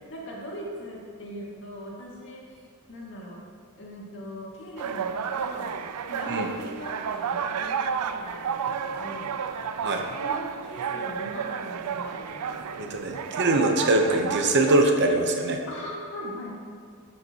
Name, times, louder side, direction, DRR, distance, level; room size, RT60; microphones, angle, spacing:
voice 1, 0.1-2.6 2.9-3.5 3.8-5.8 6.1-9.3 10.2-12.9 15.6-16.5, equal, 55° left, -4 dB, 2.0 m, -40 dB
sound 1, 4.8-14.8, right 6 dB, 90° right, 0.4 m, -31 dB
voice 2, 12.8-15.6, right 2 dB, 50° right, 3 dB, 0.8 m, -23 dB
12.5 x 6.5 x 2.9 m, 2.2 s
head